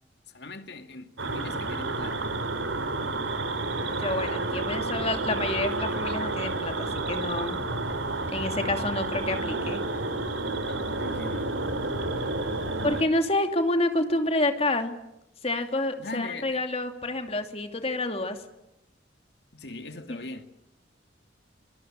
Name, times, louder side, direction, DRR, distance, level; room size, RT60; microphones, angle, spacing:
voice 1, 0.3-2.3 10.7-11.6 16.0-16.6 19.5-20.4, left 2 dB, 60° left, 2.3 m, -40 dB
sound 1, 1.2-13.0, right 2 dB, 90° right, 3.4 m, -30 dB
voice 2, 3.8-7.6 8.3-9.8 12.8-14.9 15.4-18.4, left 2 dB, 30° left, 2.7 m, -28 dB
24.5 x 22.5 x 9.0 m
head